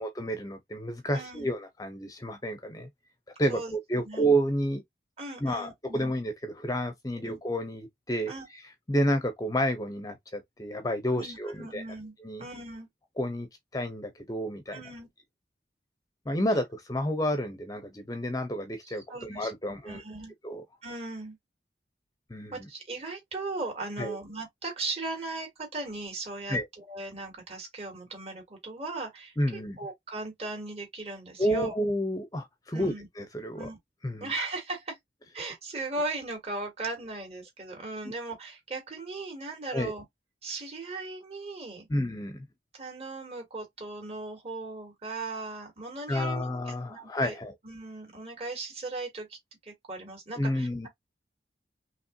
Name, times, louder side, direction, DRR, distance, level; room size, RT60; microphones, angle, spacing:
voice 1, 0.0-2.9 3.4-4.8 5.4-8.6 8.9-11.8 12.2-12.4 13.2-13.5 13.7-14.8 16.3-20.0 20.4-20.6 22.3-22.7 24.0-24.2 26.5-26.7 29.4-29.8 31.4-33.7 34.0-34.3 39.7-39.9 41.9-42.4 46.1-47.5 50.4-50.9, equal, 20° left, 0.7 m, -30 dB
voice 2, 1.1-1.6 3.5-3.8 4.0-4.3 5.2-6.1 7.1-7.4 8.3-8.5 11.1-12.9 14.7-15.1 18.8-19.5 19.8-20.3 20.8-21.4 22.5-31.7 32.7-33.1 33.5-33.8 34.2-35.0 35.3-40.0 40.4-41.9 42.7-47.4 47.6-49.4 49.6-50.9, right 2 dB, 35° right, 2.7 m, -38 dB
5.6 x 3.1 x 2.7 m
head